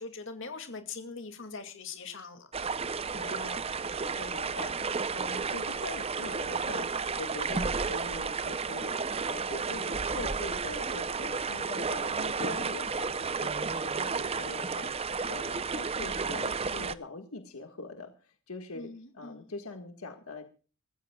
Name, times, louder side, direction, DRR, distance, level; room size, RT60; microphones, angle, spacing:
voice 1, 0.0-2.5 18.7-19.5, left 4 dB, 60° left, 7 dB, 2.4 m, -42 dB
sound 1, 2.5-16.9, right 5 dB, 25° right, 0.6 m, -32 dB
voice 2, 3.1-20.4, left 3 dB, 85° left, 6 dB, 1.7 m, -43 dB
24.0 x 15.0 x 2.3 m, 0.37 s
head